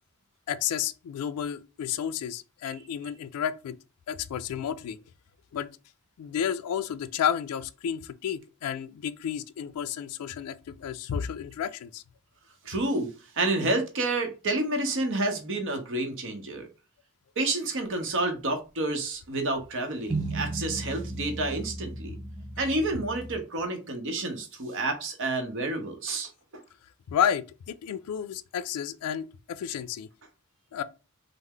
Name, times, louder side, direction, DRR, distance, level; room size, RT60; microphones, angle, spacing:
voice 1, 0.5-3.8 4.1-5.0 5.5-5.7 6.2-12.0 27.1-30.1 30.7-30.8, left 9 dB, 90° left, 0.3 m, -31 dB
voice 2, 12.6-16.7 17.4-22.2 22.6-26.3, right 2 dB, 60° right, 0.7 m, -29 dB
sound 1, 20.1-23.4, right 2 dB, 5° right, 0.4 m, -35 dB
3.3 x 2.0 x 3.5 m
head